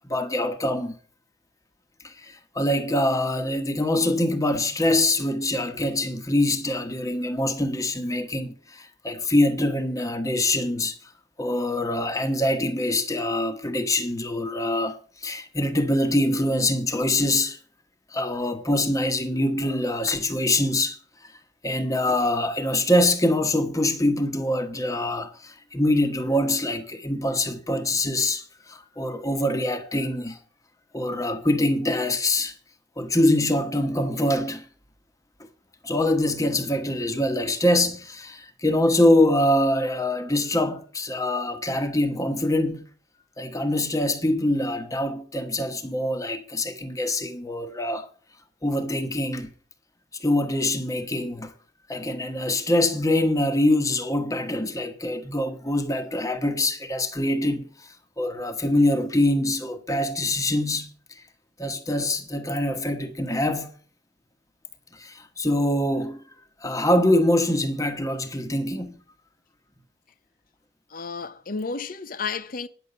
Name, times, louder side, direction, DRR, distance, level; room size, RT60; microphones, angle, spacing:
voice 1, 0.1-0.9 2.0-11.1 11.4-17.6 18.1-21.3 21.6-30.4 30.9-32.5 33.0-34.7 35.8-42.8 43.4-48.1 48.6-49.5 50.2-51.5 51.9-61.2 61.6-63.7 64.9-66.2 66.6-69.0, left 1 dB, 20° left, 1.2 m, -24 dB
voice 2, 70.9-72.7, left 4 dB, 50° left, 0.7 m, -32 dB
9.9 x 6.7 x 6.9 m
head